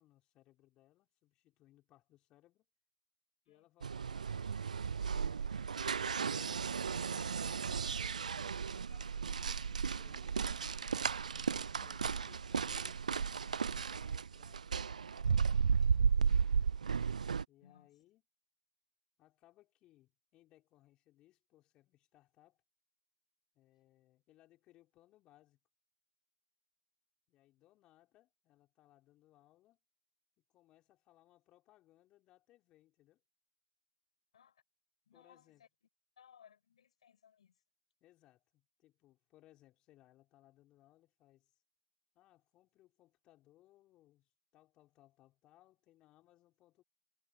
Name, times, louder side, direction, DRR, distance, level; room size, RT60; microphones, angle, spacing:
voice 1, 0.0-2.6 3.5-4.6 8.3-10.7 11.3-16.5 17.5-18.2 19.2-22.6 23.5-25.6 27.3-29.8 30.5-33.2 35.1-35.6 38.0-41.6 42.1-46.8, left 15 dB, 20° left, 6.0 m, -67 dB
sound 1, 3.8-17.4, right 6 dB, 60° right, 0.6 m, -34 dB
voice 2, 35.1-35.7 36.2-37.6, left 8 dB, 50° left, 6.1 m, -63 dB
figure-of-eight pair, 140°, 4 cm